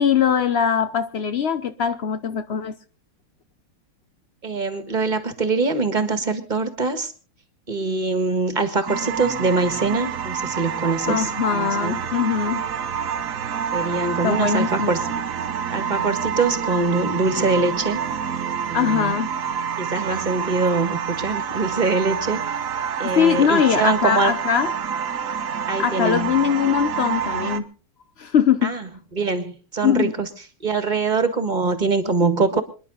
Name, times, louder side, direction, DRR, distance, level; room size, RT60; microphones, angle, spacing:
voice 1, 0.0-2.7 11.1-12.6 14.2-14.9 18.7-19.3 23.0-24.7 25.8-27.7 28.2-28.7 29.8-30.1, left 8 dB, 90° left, 0.5 m, -21 dB
voice 2, 4.4-7.1 7.7-12.0 13.7-15.2 15.7-18.0 18.7-19.2 19.8-22.4 23.0-24.4 25.7-26.3 28.6-30.3 30.6-32.6, right 3 dB, 25° right, 1.6 m, -23 dB
sound 1, 8.9-27.6, right 7 dB, 50° right, 1.2 m, -28 dB
26.5 x 10.5 x 4.0 m
omnidirectional pair, 2.3 m